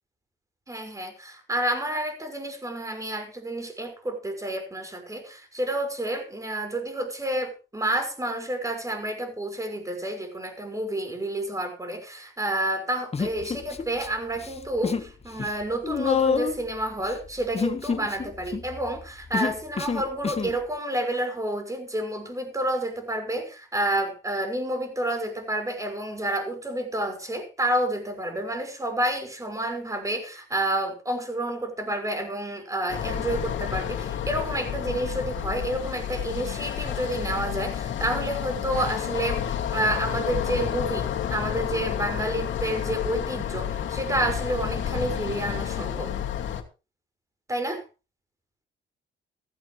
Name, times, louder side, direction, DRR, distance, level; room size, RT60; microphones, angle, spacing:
voice 1, 0.7-46.1 47.5-47.8, right 1 dB, 15° right, 5.7 m, -29 dB
Human voice, 13.1-14.1 14.4-15.1 15.4-20.6, left 5 dB, 30° left, 1.6 m, -28 dB
sound 1, 32.9-46.6, left 9 dB, 70° left, 2.5 m, -30 dB
15.0 x 15.0 x 3.3 m
cardioid pair, 90°, 20 cm